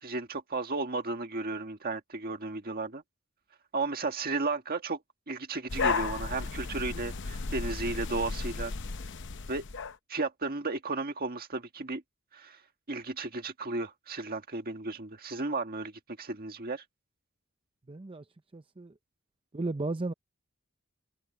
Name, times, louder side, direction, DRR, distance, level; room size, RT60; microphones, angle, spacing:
voice 1, 0.0-3.0 3.7-5.0 5.3-8.7 9.5-9.6 10.1-12.0 12.3-12.6 12.9-15.9 16.2-16.8, right 3 dB, 45° right, 1.7 m, -34 dB
sound 1, 5.7-10.0, left 4 dB, 60° left, 0.8 m, -34 dB
voice 2, 17.9-18.3 18.5-18.9 19.5-20.1, right 2 dB, 25° right, 0.6 m, -34 dB
head